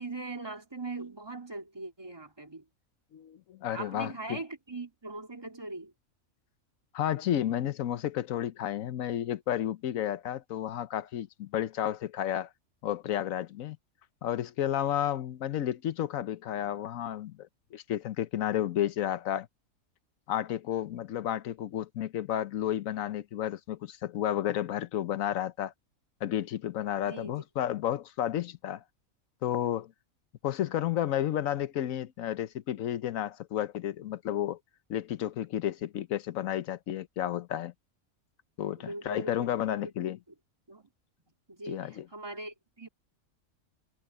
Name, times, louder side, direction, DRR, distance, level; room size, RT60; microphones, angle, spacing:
voice 1, 0.0-2.6 3.7-5.9 27.1-27.3 38.8-40.1 40.7-40.9 41.5-42.9, right 2 dB, 15° right, 2.8 m, -41 dB
voice 2, 3.1-4.4 6.9-12.5 12.8-13.8 14.2-19.5 20.3-25.7 26.2-28.8 29.4-29.9 30.4-34.6 34.9-37.7 38.6-40.2 41.6-42.1, left 11 dB, 70° left, 1.1 m, -32 dB
omnidirectional pair, 1.5 m